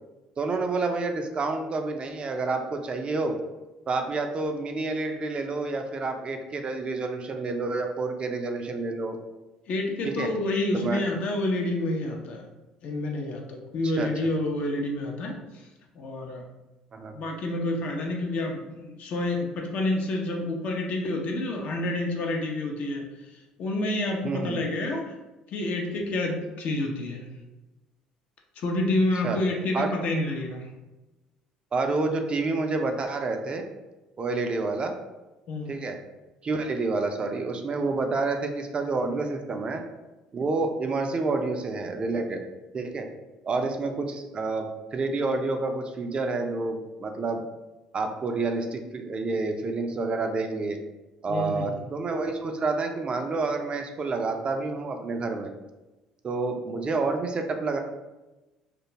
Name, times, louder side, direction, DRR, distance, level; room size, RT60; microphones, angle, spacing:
voice 1, 0.4-3.4 3.9-9.2 10.0-10.3 10.7-11.1 13.8-14.1 16.9-17.1 24.2-24.6 29.2-29.4 29.7-29.9 31.7-33.6 34.2-34.9 35.7-36.0 36.4-39.8 40.3-42.4 42.7-43.1 43.4-47.4 47.9-50.8 51.2-55.5 56.2-57.8, right 3 dB, 35° right, 5 dB, 0.4 m, -29 dB
voice 2, 9.7-12.4 12.8-15.3 16.0-16.5 17.1-23.0 23.6-25.0 25.5-27.3 28.6-30.7 35.5-35.7 51.3-51.8, left 2 dB, 55° left, 1 dB, 0.5 m, -28 dB
2.4 x 2.2 x 2.9 m, 1.1 s
hypercardioid pair, 65°, 3 cm